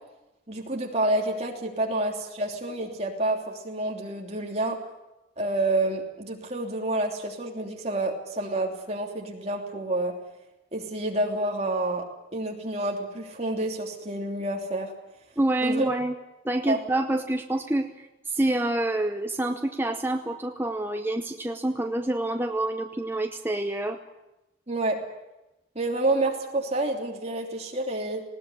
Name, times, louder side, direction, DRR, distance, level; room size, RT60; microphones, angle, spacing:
voice 1, 0.5-4.8 5.4-10.2 10.7-12.1 12.3-14.9 15.6-15.8 16.7-16.8 24.7-25.0 25.7-28.2, right 2 dB, 35° right, 1 dB, 3.1 m, -28 dB
voice 2, 15.4-16.1 16.4-24.0, right 1 dB, 10° right, 5 dB, 0.8 m, -27 dB
19.5 x 17.5 x 9.8 m, 0.97 s
head